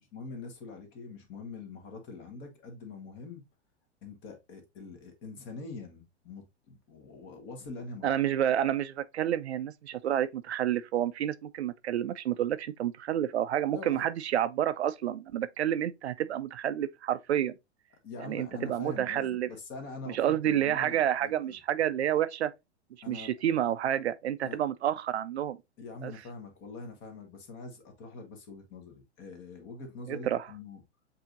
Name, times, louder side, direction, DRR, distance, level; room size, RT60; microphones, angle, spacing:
voice 1, 0.1-3.4 4.0-8.1 13.7-14.1 18.0-21.6 23.0-23.3 24.4-24.6 25.8-30.8, left 3 dB, 35° left, 1.5 m, -44 dB
voice 2, 8.0-17.5 18.2-19.5 20.1-22.5 23.1-25.6 26.0-26.1 30.1-30.4, right 11 dB, 70° right, 0.5 m, -29 dB
7.3 x 2.8 x 2.5 m
figure-of-eight pair, 105°, 34 cm